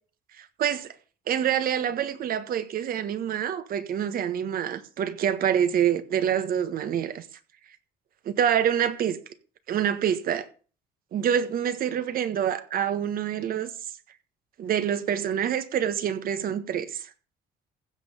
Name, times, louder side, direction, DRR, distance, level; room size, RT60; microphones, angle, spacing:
voice 1, 0.4-0.9 1.3-7.2 8.2-9.2 9.7-10.5 11.1-13.7 14.6-17.1, right 9 dB, 60° right, 1.5 m, -26 dB
15.5 x 5.7 x 6.6 m
cardioid pair, 110°, 17 cm